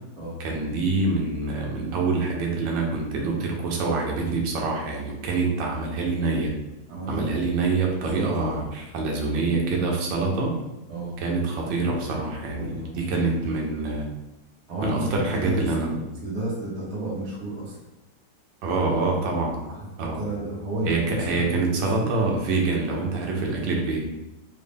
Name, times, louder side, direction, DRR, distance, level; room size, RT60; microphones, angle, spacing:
voice 1, 0.4-6.6 7.1-10.6 11.2-14.1 14.8-16.0 18.6-19.6 20.0-20.2 20.9-24.0, right 3 dB, 80° right, 0 dB, 1.4 m, -26 dB
voice 2, 6.9-7.3 8.1-8.5 10.9-11.2 12.5-13.3 14.7-15.7 16.2-17.8 19.7-22.1, right 1 dB, 55° right, -5 dB, 1.4 m, -32 dB
3.9 x 2.1 x 3.4 m, 0.98 s
omnidirectional pair, 2.0 m